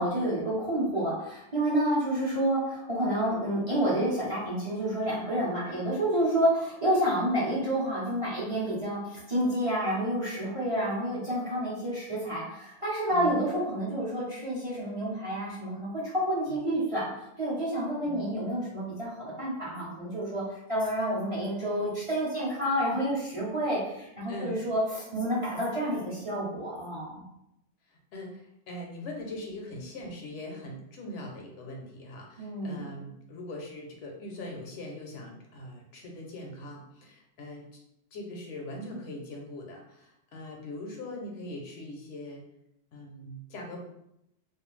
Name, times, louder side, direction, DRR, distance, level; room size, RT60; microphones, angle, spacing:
voice 1, 0.0-17.1 17.4-27.2 32.4-32.9, right 1 dB, 30° right, -7 dB, 0.7 m, -29 dB
voice 2, 24.3-24.6 27.9-37.8 38.1-42.4 42.9-43.8, left 1 dB, 70° left, 0 dB, 0.9 m, -41 dB
2.4 x 2.2 x 3.1 m, 0.81 s
omnidirectional pair, 1.3 m